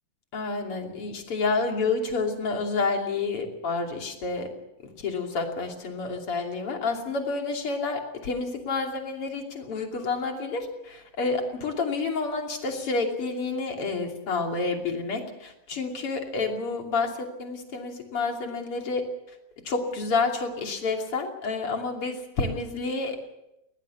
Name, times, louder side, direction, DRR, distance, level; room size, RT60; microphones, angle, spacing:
voice 1, 0.3-4.5 4.8-19.1 19.7-23.2, left 4 dB, 45° left, 3 dB, 3.5 m, -29 dB
21.0 x 19.5 x 7.2 m, 0.85 s
omnidirectional pair, 3.7 m